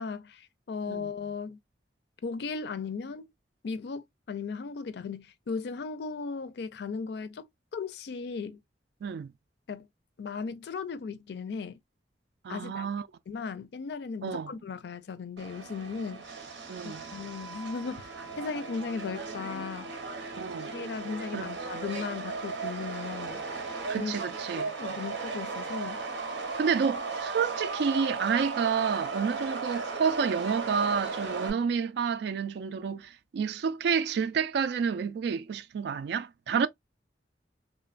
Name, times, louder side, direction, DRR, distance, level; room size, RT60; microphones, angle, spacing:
voice 1, 0.0-1.6 2.2-3.3 3.6-7.5 7.7-8.6 9.7-9.9 10.2-11.8 12.5-12.9 13.3-16.2 16.8-18.1 18.4-19.9 20.7-23.4 24.0-24.2 24.6-26.0, left 5 dB, 65° left, 0.4 m, -36 dB
voice 2, 9.0-9.3 12.4-13.1 14.2-14.5 16.7-17.0 20.3-20.8 21.3-21.5 23.9-24.7 26.6-36.7, right 6 dB, 65° right, 0.3 m, -29 dB
Subway metro underground, 15.4-31.5, right 4 dB, 90° right, 0.8 m, -36 dB
3.0 x 2.1 x 2.4 m
head